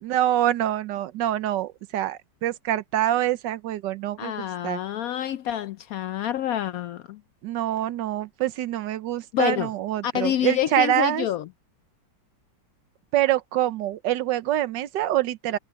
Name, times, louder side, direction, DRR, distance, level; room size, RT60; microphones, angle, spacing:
voice 1, 0.0-4.3 4.6-4.8 7.4-11.3 13.1-15.6, right 12 dB, 85° right, 1.4 m, -25 dB
voice 2, 4.2-7.2 9.3-9.7 10.0-11.5, left 11 dB, 70° left, 0.8 m, -27 dB
omnidirectional pair, 1.9 m